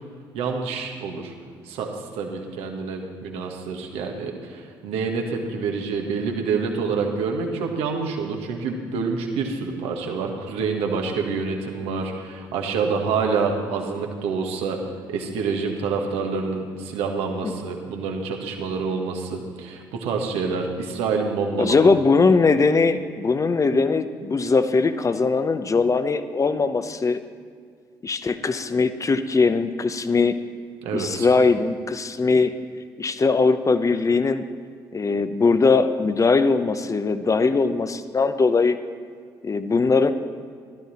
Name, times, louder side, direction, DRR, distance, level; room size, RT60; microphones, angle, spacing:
voice 1, 0.3-1.3 1.6-14.8 15.1-21.8 30.8-31.3, right 5 dB, 70° right, 2 dB, 1.7 m, -27 dB
voice 2, 21.6-27.2 28.0-30.4 30.9-32.5 33.0-34.4 34.9-38.8 39.4-40.1, left 4 dB, 30° left, 11 dB, 0.9 m, -20 dB
15.0 x 12.5 x 4.3 m, 2.1 s
hypercardioid pair, 50°, 11 cm